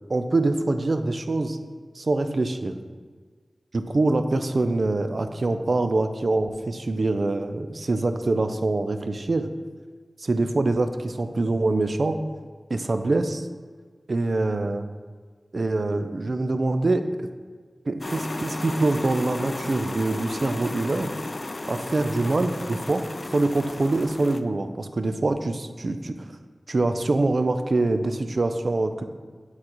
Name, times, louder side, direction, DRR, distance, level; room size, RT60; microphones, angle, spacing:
voice 1, 0.1-1.6 2.0-2.8 3.7-9.5 10.2-12.2 12.7-13.5 14.1-14.9 15.5-17.3 17.9-21.1 21.6-23.0 23.3-26.1 26.7-29.0, right 2 dB, 60° right, 8 dB, 0.4 m, -24 dB
sound 1, 18.0-24.4, left 2 dB, 45° left, 0.3 m, -34 dB
9.8 x 4.0 x 3.0 m, 1.5 s
wide cardioid pair, 65°, 0 cm